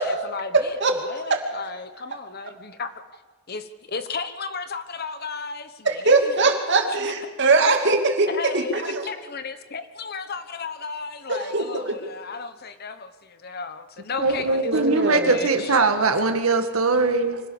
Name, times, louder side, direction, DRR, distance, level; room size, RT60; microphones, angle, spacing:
voice 1, 0.0-0.7 1.0-2.9 3.5-6.3 6.9-7.1 8.3-15.7, left 4 dB, 45° left, 10 dB, 1.2 m, -34 dB
voice 2, 0.5-0.9 1.3-1.4 5.8-9.1 11.3-12.0 14.6-15.4, right 3 dB, 55° right, 4 dB, 2.7 m, -21 dB
voice 3, 14.2-17.4, right 3 dB, 90° right, 6 dB, 2.0 m, -21 dB
25.0 x 17.0 x 7.1 m, 1.2 s
head